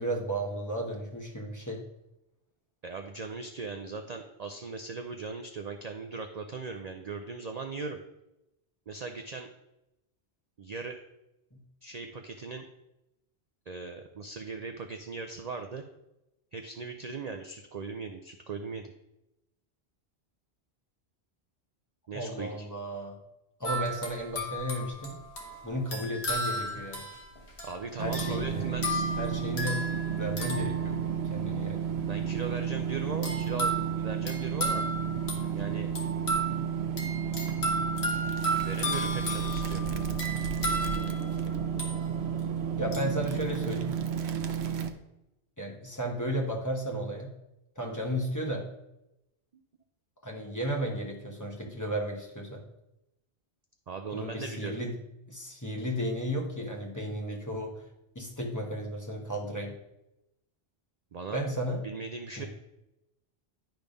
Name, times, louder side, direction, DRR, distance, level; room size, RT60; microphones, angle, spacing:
voice 1, 0.0-1.8 11.5-11.6 22.1-23.2 23.6-25.2 25.6-27.0 28.0-28.7 29.2-29.8 30.1-31.9 42.8-43.9 45.6-47.3 47.8-48.7 50.2-52.6 54.1-54.9 55.3-57.9 58.1-59.7 61.3-61.8 62.4-62.5, equal, 15° left, -1 dB, 1.1 m, -34 dB
voice 2, 2.8-8.0 8.9-9.5 10.6-11.0 11.8-12.6 13.7-15.8 16.5-18.9 22.1-22.7 27.6-29.1 32.0-34.8 35.5-35.9 38.6-39.8 49.5-49.6 53.9-54.9 61.1-61.4 61.8-62.5, right 4 dB, 50° right, 5 dB, 0.5 m, -39 dB
sound 1, 23.6-31.5 33.2-42.4 42.9-43.1, right 1 dB, 75° left, 1.6 m, -35 dB
sound 2, 28.0-44.9, right 7 dB, 75° right, 0.9 m, -32 dB
10.5 x 3.5 x 5.2 m, 0.90 s
omnidirectional pair, 1.1 m